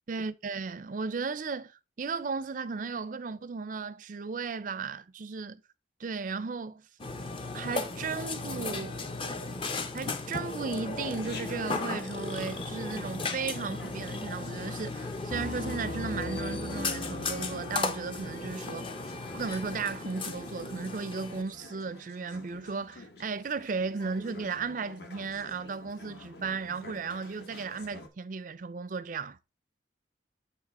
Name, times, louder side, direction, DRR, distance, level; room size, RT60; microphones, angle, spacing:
voice 1, 0.1-1.7 2.0-5.6 6.0-6.9 7.5-9.0 9.9-18.9 19.3-29.4, right 4 dB, 45° right, 0.4 m, -35 dB
Burping eructation, 7.0-21.4, left 3 dB, 30° left, 0.6 m, -36 dB
Chatter, 11.0-28.1, left 2 dB, 60° left, 1.3 m, -49 dB
Piano, 15.3-20.8, left 1 dB, 80° left, 0.9 m, -41 dB
8.8 x 3.2 x 4.2 m
head